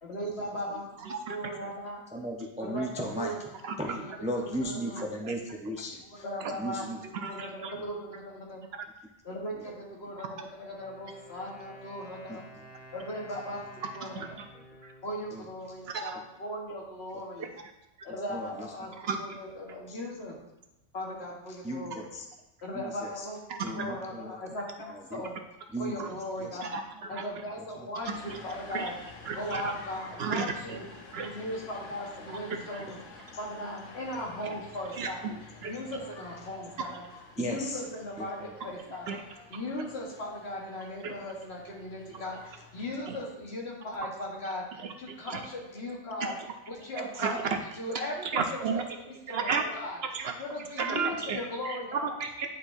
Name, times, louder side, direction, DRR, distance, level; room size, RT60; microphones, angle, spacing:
voice 1, 0.0-2.0 2.6-2.9 3.1-3.4 4.0-5.2 6.1-6.8 7.2-8.6 9.2-12.4 12.9-13.6 13.9-14.2 15.0-17.5 18.0-18.9 19.2-20.4 20.9-22.1 22.6-23.4 23.7-25.4 25.8-26.8 27.1-28.9 29.3-30.8 31.2-33.0 33.4-35.3 35.7-37.0 37.4-38.4 38.6-39.2 39.5-44.6 45.0-46.3 46.7-47.4 47.8-48.4 48.7-48.8 49.3-50.0 50.4-52.2, left 1 dB, 60° left, -2 dB, 1.6 m, -38 dB
voice 2, 1.0-1.4 3.6-3.7 5.2-5.3 6.4-6.5 7.1-7.7 8.7-8.9 14.0-14.5 14.8-14.9 15.9-16.2 17.4-17.5 19.0-19.4 23.5-23.9 26.0-26.1 26.5-27.2 28.0-28.4 28.7-28.9 29.3-29.7 30.2-30.8 31.1-31.3 32.5-32.8 34.9-35.7 36.8-36.9 39.1-39.2 39.5-39.6 41.0-41.2 42.1-42.2 43.1-43.2 44.8-45.4 46.2-46.3 47.2-47.4 47.9-48.8 49.3-49.6 50.1-50.3 50.8-52.5, right 5 dB, 65° right, 5 dB, 0.7 m, -34 dB
voice 3, 2.1-3.4 3.8-6.2 6.5-7.0 7.7-7.8 9.5-9.7 12.3-12.7 15.3-15.4 18.1-18.9 19.9-20.0 21.6-22.3 22.7-23.3 23.6-24.3 24.9-25.2 25.7-25.9 26.4-26.6 27.6-27.9 37.4-37.8 38.2-38.5, equal, 10° right, 0 dB, 0.4 m, -36 dB
Wind instrument woodwind instrument, 10.6-16.4, equal, 40° left, 1.1 m, -51 dB
sound 1, 28.0-43.0, left 3 dB, 85° left, 1.2 m, -50 dB
10.0 x 4.2 x 2.6 m, 0.96 s
omnidirectional pair, 1.2 m